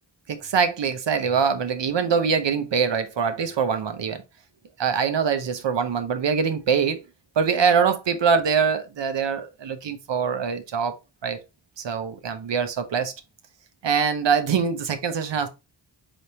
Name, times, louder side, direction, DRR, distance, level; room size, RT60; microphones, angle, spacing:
voice 1, 0.3-4.2 4.8-7.0 7.4-11.0 11.2-11.4 11.8-13.1 13.8-15.5, right 6 dB, 70° right, 0.7 m, -23 dB
4.0 x 3.5 x 2.8 m
cardioid pair, 60°, 45 cm